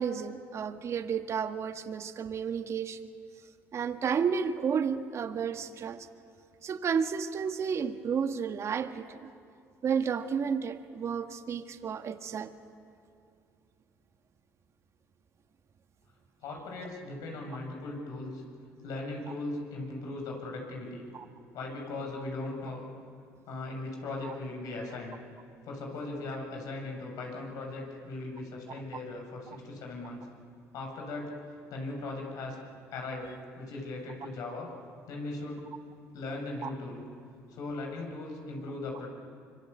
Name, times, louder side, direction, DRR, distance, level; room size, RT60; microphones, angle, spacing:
voice 1, 0.0-3.0 3.7-6.1 6.6-9.3 9.8-12.5 21.1-21.2 24.2-24.3 28.7-28.8 36.6-36.7, right 6 dB, 50° right, 8 dB, 1.7 m, -32 dB
voice 2, 16.4-18.4 18.8-21.0 21.5-22.8 23.5-25.2 25.6-30.3 30.7-31.4 31.7-32.6 32.9-34.7 35.1-35.7 36.1-37.0 37.5-39.1, left 2 dB, 70° left, 1 dB, 7.3 m, -38 dB
25.0 x 25.0 x 8.4 m, 2.4 s
supercardioid pair, 80°, 6 cm